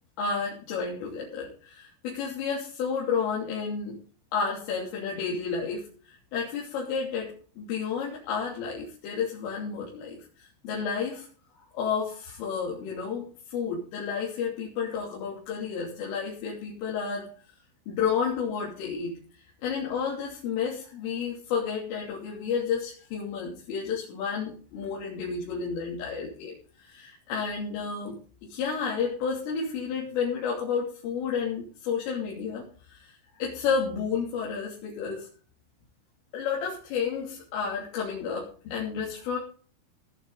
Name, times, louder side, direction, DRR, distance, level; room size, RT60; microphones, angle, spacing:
voice 1, 0.2-4.0 4.3-11.3 11.7-17.3 17.9-19.1 19.6-28.2 28.5-33.1 33.4-35.3 36.3-39.4, left 6 dB, 85° left, -4 dB, 5.8 m, -31 dB
19.0 x 10.0 x 4.1 m, 0.42 s
omnidirectional pair, 5.6 m